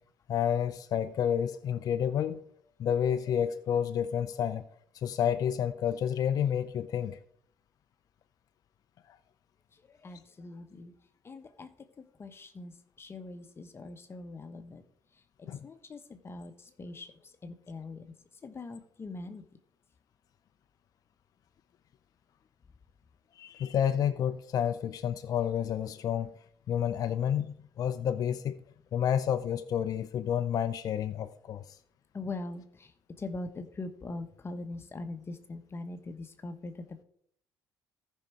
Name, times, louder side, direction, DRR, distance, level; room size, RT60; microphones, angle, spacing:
voice 1, 0.3-2.4 2.8-4.6 4.9-7.2 15.5-15.6 23.4-26.3 26.7-28.6 28.9-31.6, left 9 dB, 60° left, 0.6 m, -30 dB
voice 2, 10.0-10.9 11.2-11.7 12.2-14.8 15.6-17.1 17.4-18.1 18.4-19.4 32.1-32.9 33.2-36.7, left 2 dB, 35° left, 1.3 m, -42 dB
14.5 x 5.6 x 4.7 m
supercardioid pair, 65°, 7 cm